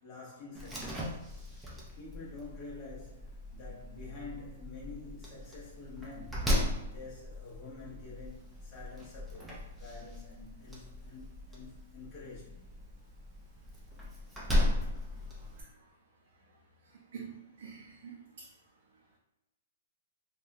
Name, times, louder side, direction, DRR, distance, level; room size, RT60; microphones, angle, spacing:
voice 1, 0.0-1.2 2.0-6.5 6.8-12.7, left 3 dB, 25° left, 0.9 m, -48 dB
Slam, 0.5-15.6, left 1 dB, 5° right, 0.4 m, -37 dB
voice 2, 16.9-18.5, right 6 dB, 60° right, 0.5 m, -47 dB
3.4 x 2.3 x 2.6 m
hypercardioid pair, 175°, 0 cm